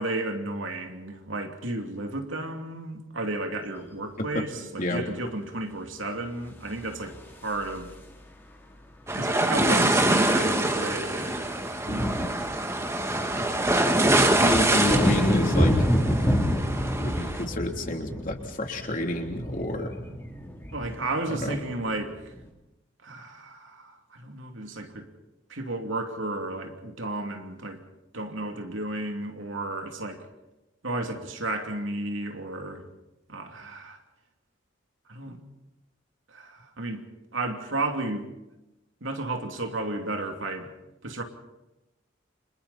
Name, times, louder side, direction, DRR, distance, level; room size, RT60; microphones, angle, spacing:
voice 1, 0.0-7.2 7.4-7.9 9.1-11.5 11.8-12.5 14.2-14.5 20.7-22.3 23.0-25.1 25.5-27.8 28.1-30.2 30.8-32.8 33.3-34.0 35.1-35.4 36.3-37.0 37.3-38.2 39.0-40.7 41.0-41.2, right 2 dB, 85° right, 3.0 m, -33 dB
sound 1, 6.7-8.2 9.5-9.6 9.8-10.1 10.3-22.4, equal, 10° left, 3.4 m, -29 dB
sound 2, 9.1-17.4, right 1 dB, 15° right, 2.0 m, -25 dB
voice 2, 14.4-15.9 17.0-19.9 21.3-21.6, left 1 dB, 45° left, 3.4 m, -29 dB
29.5 x 27.0 x 4.3 m
head